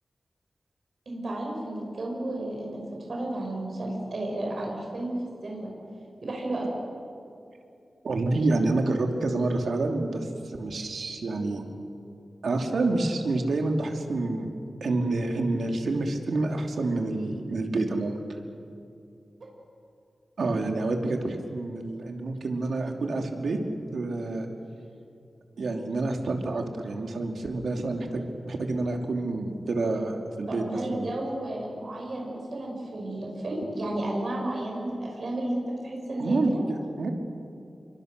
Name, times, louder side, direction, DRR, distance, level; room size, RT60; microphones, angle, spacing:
voice 1, 1.0-2.8 3.1-5.2 5.4-5.7 6.2-6.8 30.5-36.6, right 1 dB, 60° right, -1 dB, 6.5 m, -32 dB
voice 2, 8.0-11.7 12.4-18.2 20.4-23.6 23.9-24.5 25.6-31.0 36.2-37.1, right 2 dB, 80° right, 3 dB, 2.7 m, -28 dB
29.5 x 24.0 x 6.7 m, 2.5 s
wide cardioid pair, 125°, 0 cm